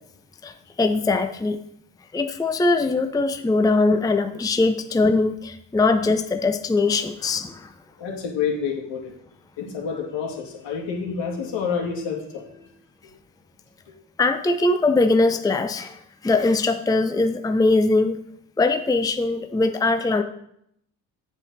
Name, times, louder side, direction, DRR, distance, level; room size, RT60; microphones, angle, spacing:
voice 1, 0.4-1.6 2.1-7.7 14.2-18.2 18.6-20.2, left 3 dB, 10° left, 7 dB, 0.6 m, -21 dB
voice 2, 8.0-9.1 9.6-12.7, left 6 dB, 75° left, -1 dB, 2.6 m, -28 dB
7.4 x 7.2 x 4.1 m, 0.73 s
supercardioid pair, 65°, 44 cm